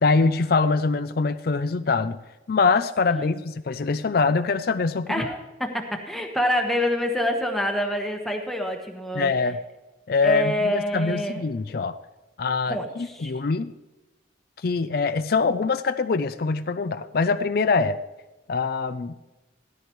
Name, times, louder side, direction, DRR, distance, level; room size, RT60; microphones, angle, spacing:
voice 1, 0.0-2.2 2.5-5.3 9.1-9.6 10.1-12.0 12.4-13.7 14.6-18.0 18.5-19.1, left 4 dB, 50° left, 9 dB, 0.4 m, -23 dB
voice 2, 5.1-9.3 10.2-11.4 12.7-13.3, equal, ahead, 2 dB, 1.2 m, -26 dB
17.5 x 13.0 x 3.1 m, 1.0 s
head